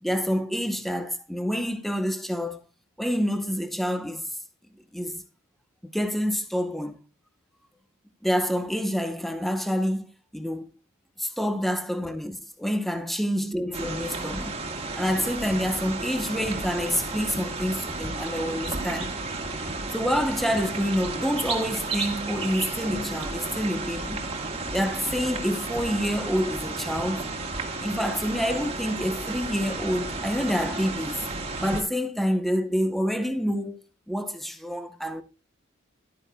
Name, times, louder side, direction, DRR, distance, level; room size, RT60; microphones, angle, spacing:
voice 1, 0.0-2.6 3.0-4.3 4.9-5.2 5.9-7.0 8.2-10.1 10.3-10.7 11.2-14.6 14.9-19.1 19.9-24.2 24.7-27.3 27.8-31.3 31.6-33.8 34.1-35.2, equal, ahead, 0.7 m, -27 dB
sound 1, 13.7-31.8, right 3 dB, 30° right, 1.7 m, -33 dB
12.0 x 9.5 x 2.2 m
head